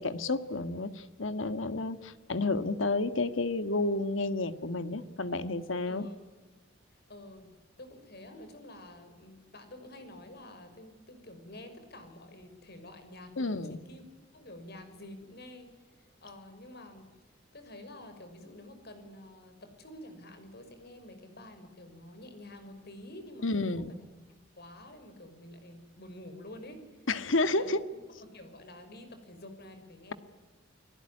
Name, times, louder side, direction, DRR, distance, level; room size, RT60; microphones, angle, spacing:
voice 1, 0.0-6.1 13.4-13.8 23.4-23.9 27.1-27.8, left 2 dB, 80° left, 12 dB, 1.7 m, -31 dB
voice 2, 5.9-6.2 7.1-14.0 14.3-15.7 16.0-17.1 17.5-24.1 24.6-27.1 27.5-30.1, left 1 dB, 55° left, 8 dB, 5.6 m, -49 dB
29.5 x 19.5 x 10.0 m, 1.3 s
head